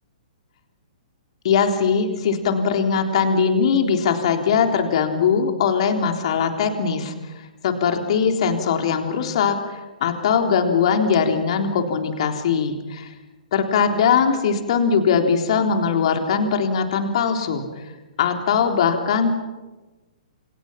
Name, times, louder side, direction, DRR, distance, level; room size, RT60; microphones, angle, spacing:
voice 1, 1.4-13.1 13.5-17.8 18.2-19.3, left 6 dB, 50° left, 4 dB, 3.7 m, -21 dB
29.5 x 28.5 x 5.9 m, 1.2 s
figure-of-eight pair, 120°, 4 cm